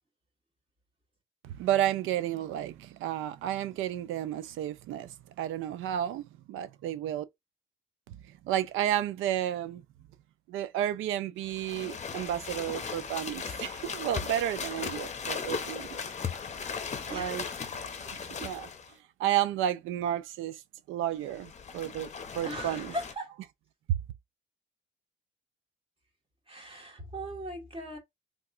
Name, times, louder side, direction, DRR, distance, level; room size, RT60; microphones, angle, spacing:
voice 1, 1.4-7.2 8.1-8.2 8.4-9.8 10.5-16.0 17.1-17.4 18.1-18.7 19.2-20.6 20.9-22.1 22.3-22.9 23.9-24.0, right 11 dB, 90° right, 0.5 m, -32 dB
sound 1, 11.4-18.9 21.2-23.1, left 6 dB, 35° left, 0.7 m, -37 dB
voice 2, 17.1-17.5 22.4-23.4 26.5-28.0, right 1 dB, 30° right, 1.4 m, -39 dB
3.5 x 2.8 x 2.5 m
cardioid pair, 90°, 20 cm